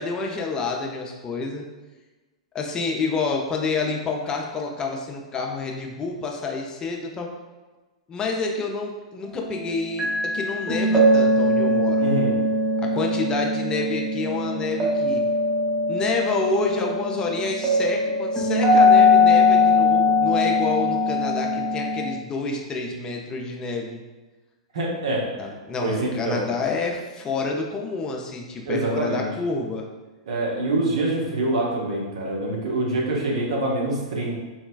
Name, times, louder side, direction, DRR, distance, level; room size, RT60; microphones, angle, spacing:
voice 1, 0.0-1.6 2.5-7.3 8.1-12.1 12.8-15.2 15.9-24.0 25.4-29.9, left 4 dB, 20° left, 1 dB, 0.4 m, -28 dB
sound 1, 10.0-22.1, left 2 dB, 20° right, 0.9 m, -20 dB
voice 2, 12.0-12.4 24.7-25.2 25.8-26.4 28.6-29.3 30.3-34.3, right 2 dB, 70° right, -2 dB, 0.8 m, -25 dB
3.9 x 2.1 x 2.3 m, 1.2 s
hypercardioid pair, 110°, 3 cm